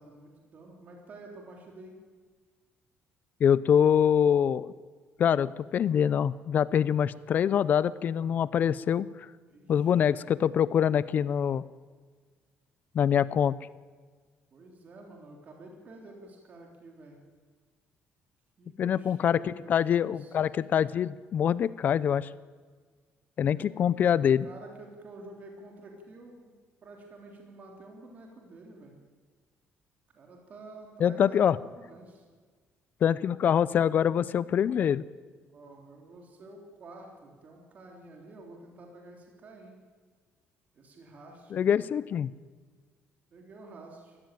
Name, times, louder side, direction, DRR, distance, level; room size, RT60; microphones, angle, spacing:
voice 1, 0.0-2.0 9.5-10.1 14.5-17.2 18.6-20.4 23.5-24.0 24.4-26.5 26.8-29.0 30.1-32.2 35.5-39.8 40.7-41.8 43.3-44.2, right 2 dB, 40° right, 1 dB, 3.4 m, -49 dB
voice 2, 3.4-4.7 5.2-9.3 9.7-11.6 12.9-13.5 18.8-22.3 23.4-24.5 31.0-31.6 33.0-35.0 41.5-42.3, left 8 dB, 45° left, 19 dB, 0.5 m, -25 dB
20.5 x 15.0 x 9.1 m, 1.5 s
cardioid pair, 150°, 4 cm